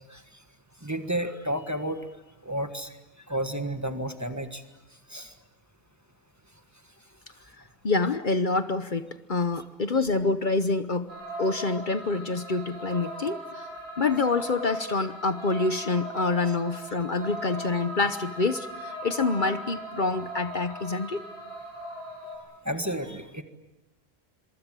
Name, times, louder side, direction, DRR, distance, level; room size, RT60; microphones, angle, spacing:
voice 1, 0.8-2.1 2.4-2.9 3.3-4.6 5.1-5.3 22.6-23.4, right 1 dB, 15° right, 7 dB, 1.6 m, -31 dB
voice 2, 7.8-11.1 11.4-13.7 14.0-21.2, left 3 dB, 50° left, 10 dB, 1.1 m, -27 dB
sound 1, 11.1-22.4, right 1 dB, 50° right, 7.0 m, -39 dB
26.0 x 24.0 x 7.6 m, 1.1 s
omnidirectional pair, 1.1 m